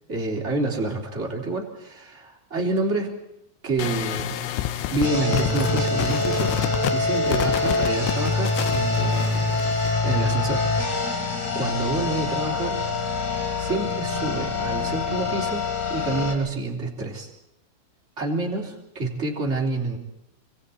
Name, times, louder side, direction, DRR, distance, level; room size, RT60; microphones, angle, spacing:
voice 1, 0.1-3.1 3.6-4.4 4.9-6.5 6.9-9.6 10.0-10.6 11.1-11.2 11.5-12.8 13.6-15.6 15.9-17.3 18.2-20.0, right 3 dB, 20° right, 0 dB, 2.4 m, -28 dB
sound 1, 3.8-9.9, left 11 dB, 75° left, 2.6 m, -29 dB
sound 2, 5.0-16.3, left 3 dB, 40° left, 4.9 m, -25 dB
28.5 x 25.5 x 4.3 m, 0.82 s
omnidirectional pair, 5.7 m